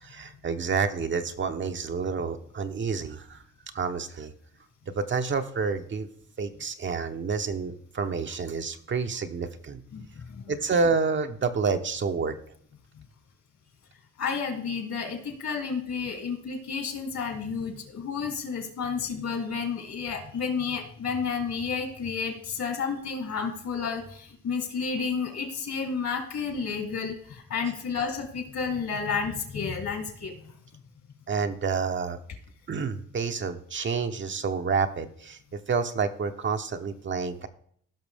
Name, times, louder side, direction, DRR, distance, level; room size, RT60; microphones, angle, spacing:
voice 1, 0.0-3.4 3.7-4.3 4.9-6.1 6.4-9.8 10.5-12.4 27.6-27.7 31.3-32.2 32.7-35.4 35.7-37.5, right 5 dB, 40° right, 7 dB, 0.8 m, -29 dB
voice 2, 9.9-10.4 13.0-13.1 14.2-30.6, left 5 dB, 60° left, 3 dB, 2.9 m, -31 dB
16.0 x 6.0 x 3.4 m, 0.63 s
cardioid pair, 90°, 30 cm